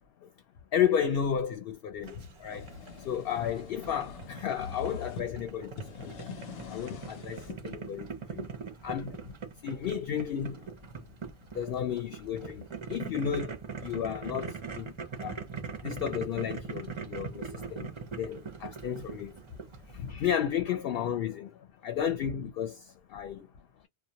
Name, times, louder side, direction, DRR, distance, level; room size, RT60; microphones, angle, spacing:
voice 1, 0.7-2.7 3.0-6.1 6.7-8.5 8.8-9.3 9.6-10.7 11.5-12.6 12.9-15.4 15.8-19.4 19.9-23.5, left 9 dB, 65° left, 0.7 m, -33 dB
Boiling, 2.0-20.1, right 5 dB, 40° right, 0.4 m, -42 dB
sound 1, 2.2-5.3 5.7-7.6, left 5 dB, 85° left, 0.9 m, -43 dB
2.3 x 2.1 x 2.7 m
omnidirectional pair, 1.2 m